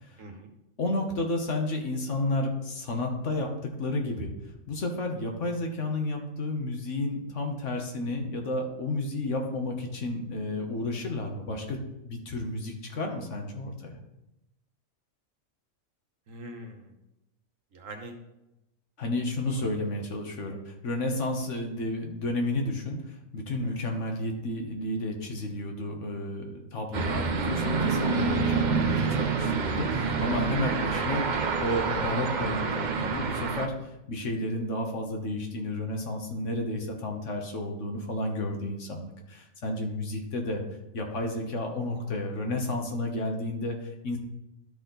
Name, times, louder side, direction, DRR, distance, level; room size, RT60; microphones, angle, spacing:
voice 1, 0.2-0.5 16.3-16.9 17.7-18.2 19.5-19.7 23.6-23.7, right 1 dB, 70° right, 5 dB, 1.4 m, -43 dB
voice 2, 0.8-4.3 4.7-11.8 12.0-14.0 19.0-31.3 31.6-40.6 40.9-44.2, left 2 dB, 60° left, 2 dB, 1.5 m, -31 dB
sound 1, 26.9-33.7, right 5 dB, 45° right, 0.6 m, -27 dB
12.0 x 4.2 x 3.9 m, 0.91 s
omnidirectional pair, 1.4 m